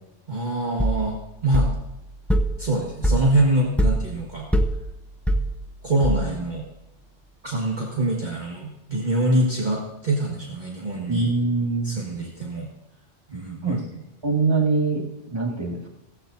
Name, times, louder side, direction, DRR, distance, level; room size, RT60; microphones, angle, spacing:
voice 1, 0.3-1.7 2.6-4.5 5.8-6.6 7.4-11.3 11.8-12.7 13.3-13.8, right 1 dB, 40° right, -3 dB, 1.7 m, -24 dB
sound 1, 0.8-6.6, right 1 dB, ahead, 0.4 m, -25 dB
voice 2, 11.1-12.0 13.6-13.8 14.2-15.9, right 3 dB, 20° right, -1 dB, 2.0 m, -23 dB
16.5 x 15.0 x 2.7 m, 0.89 s
omnidirectional pair, 1.2 m